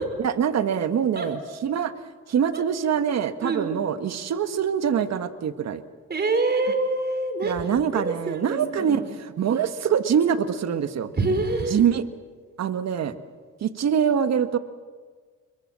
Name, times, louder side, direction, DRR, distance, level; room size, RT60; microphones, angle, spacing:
voice 1, 0.2-1.9 2.3-5.8 7.4-11.1 11.7-12.0 12.6-13.2 13.6-14.6, right 8 dB, 60° right, 10 dB, 1.5 m, -24 dB
voice 2, 6.1-9.1 11.2-11.8, right 2 dB, 35° right, 7 dB, 4.7 m, -26 dB
27.5 x 22.0 x 7.5 m, 1.5 s
cardioid pair, 90°, 30 cm